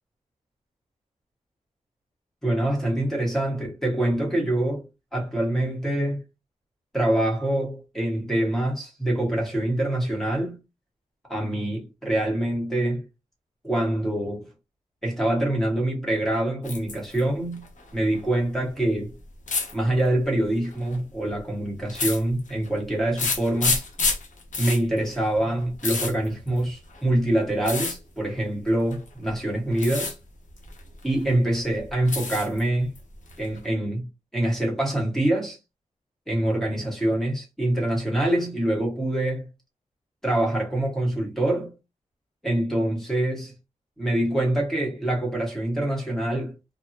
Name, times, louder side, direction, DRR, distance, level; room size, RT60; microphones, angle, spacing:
voice 1, 2.4-4.9 5.1-6.2 6.9-10.6 11.3-13.0 13.6-14.5 15.0-17.6 17.9-19.1 19.7-23.8 24.6-30.1 31.0-32.9 33.4-34.1 34.3-35.6 36.3-39.5 40.2-41.7 42.4-43.5 44.0-46.5, right 1 dB, 5° left, 1.2 m, -25 dB
sound 1, 16.6-17.2 17.5-18.2 19.5-19.7 20.6-21.0 21.9-22.7 23.2-27.0 27.6-28.0 28.9-29.3 29.7-30.1 30.5-31.3 31.7-32.6 33.0-33.6, left 4 dB, 70° left, 0.8 m, -29 dB
3.4 x 2.0 x 2.8 m
wide cardioid pair, 165°, 14 cm